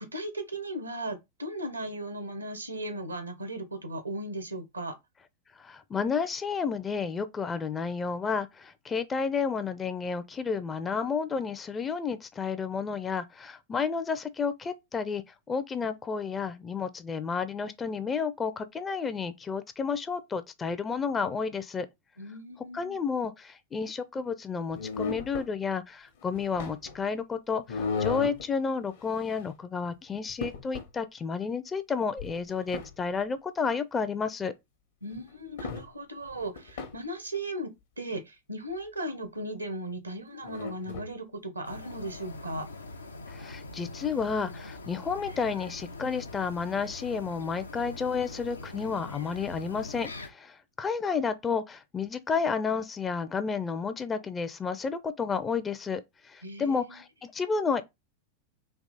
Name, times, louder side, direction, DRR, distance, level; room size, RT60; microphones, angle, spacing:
voice 1, 0.0-4.9 22.2-23.0 35.0-42.7 56.4-57.0, right 1 dB, 80° right, 0.9 m, -37 dB
voice 2, 5.6-15.2 15.5-21.9 22.7-34.5 43.3-56.0 56.3-57.8, left 5 dB, 20° left, 0.5 m, -31 dB
sound 1, 24.7-25.5 26.2-27.0 27.7-28.4 28.9-29.5 29.9-30.0 30.3-30.9 32.2-32.9 35.1-35.2 35.6-35.9 36.2-37.0 40.4-41.1, left 5 dB, 60° left, 1.0 m, -35 dB
sound 2, 41.6-50.3, left 2 dB, 75° left, 0.5 m, -43 dB
3.5 x 2.9 x 4.0 m
figure-of-eight pair, 90°, 0 cm